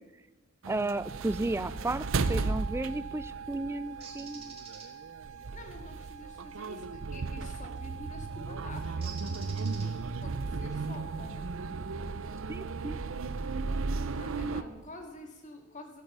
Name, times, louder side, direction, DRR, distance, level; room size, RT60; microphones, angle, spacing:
sound 1, 0.6-14.6, right 4 dB, 65° right, 0.6 m, -35 dB
voice 1, 0.7-4.5 12.5-13.0, right 2 dB, 10° right, 14 dB, 0.3 m, -33 dB
Bird, 4.0-4.9 7.5-7.7 9.0-10.2, right 5 dB, 30° right, 2.2 m, -47 dB
voice 2, 5.5-9.1 10.2-11.6 14.1-16.0, left 1 dB, 35° left, 4 dB, 1.9 m, -47 dB
13.5 x 8.9 x 6.7 m, 1.2 s
head